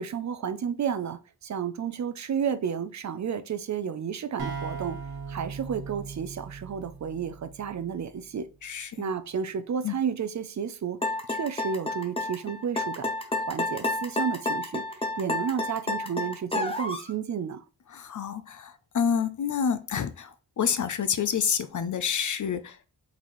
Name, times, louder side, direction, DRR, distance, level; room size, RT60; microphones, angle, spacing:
voice 1, 0.0-5.0 5.3-8.5 9.0-13.1 13.5-17.6, right 7 dB, 45° right, 0.4 m, -32 dB
sound 1, 4.4-8.0, right 5 dB, 65° right, 1.2 m, -38 dB
voice 2, 8.6-9.1 9.8-10.0 17.9-22.9, left 7 dB, 50° left, 0.5 m, -28 dB
sound 2, 11.0-17.1, left 2 dB, 15° left, 0.7 m, -30 dB
4.3 x 4.1 x 3.0 m
wide cardioid pair, 150°, 40 cm